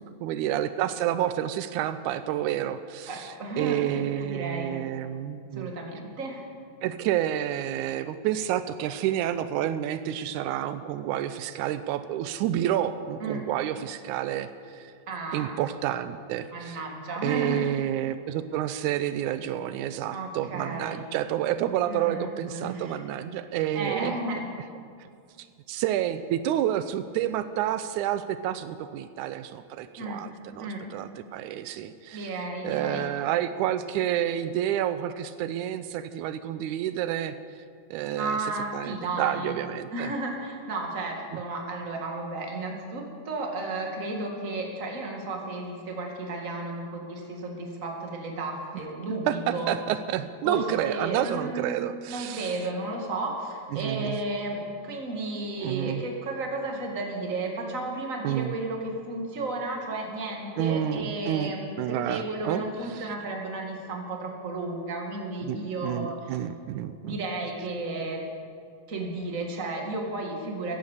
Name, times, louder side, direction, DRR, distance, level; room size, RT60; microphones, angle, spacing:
voice 1, 0.0-5.7 6.8-14.9 15.3-16.8 17.2-24.2 25.0-25.1 25.4-37.4 37.9-40.1 49.3-52.6 53.7-54.2 55.6-56.0 58.2-58.6 60.6-62.6 62.9-63.1 65.4-67.2, right 11 dB, 85° right, 12 dB, 2.0 m, -29 dB
voice 2, 3.1-3.8 4.2-4.7 5.5-6.4 13.2-13.4 15.1-15.6 16.5-17.7 20.1-21.1 21.9-23.0 23.7-24.5 30.0-30.2 30.6-30.8 32.1-33.1 38.2-39.5 39.9-49.7 50.4-66.3 67.0-68.2 68.9-70.8, right 2 dB, 30° right, 1 dB, 2.0 m, -33 dB
15.5 x 10.5 x 7.3 m, 2.3 s
omnidirectional pair, 3.5 m